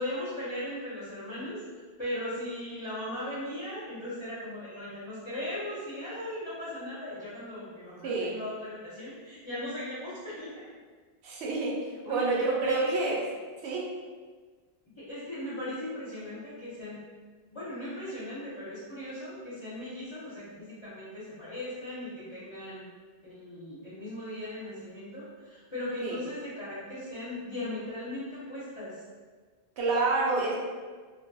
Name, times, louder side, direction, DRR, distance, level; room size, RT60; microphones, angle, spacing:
voice 1, 0.0-1.6 2.0-10.7 12.0-13.0 15.0-17.0 17.5-22.9 23.2-29.0, left 1 dB, 35° left, -11 dB, 0.6 m, -38 dB
voice 2, 8.0-8.3 11.2-13.2 13.6-13.8 26.0-26.2 29.8-30.6, right 3 dB, 90° right, -4 dB, 0.9 m, -28 dB
2.5 x 2.2 x 2.6 m, 1.5 s
omnidirectional pair, 1.1 m